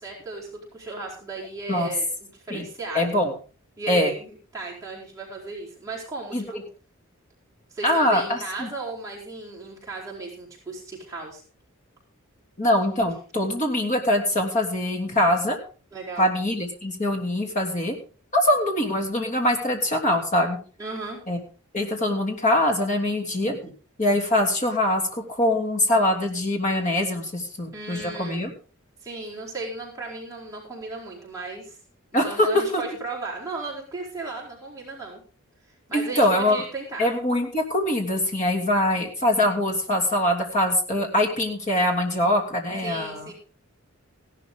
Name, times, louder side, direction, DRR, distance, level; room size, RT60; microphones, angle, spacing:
voice 1, 0.0-0.5 0.7-3.3 3.8-6.6 7.7-11.4 15.9-16.3 20.8-21.2 27.7-28.4 29.0-31.8 32.1-35.2 35.9-37.1 42.8-43.3, right 3 dB, 15° right, -5 dB, 4.6 m, -35 dB
voice 2, 2.9-3.3 3.9-4.1 6.3-6.4 7.8-8.7 12.6-15.6 16.2-17.9 18.3-20.6 21.3-21.4 21.7-23.7 24.0-28.5 32.1-32.8 35.9-36.6 37.0-43.3, left 1 dB, 35° left, 1 dB, 3.1 m, -23 dB
16.5 x 12.0 x 3.8 m, 0.38 s
head